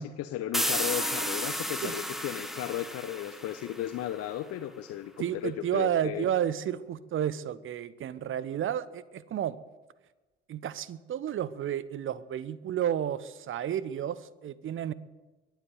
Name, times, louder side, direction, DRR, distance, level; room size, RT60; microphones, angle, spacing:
voice 1, 0.0-6.3, left 12 dB, 50° left, 9 dB, 0.9 m, -35 dB
sound 1, 0.5-4.1, equal, ahead, 1.8 m, -33 dB
voice 2, 5.2-9.6 10.5-14.9, right 10 dB, 40° right, 18 dB, 0.9 m, -31 dB
22.0 x 8.3 x 7.8 m, 1.2 s
figure-of-eight pair, 50°, 32 cm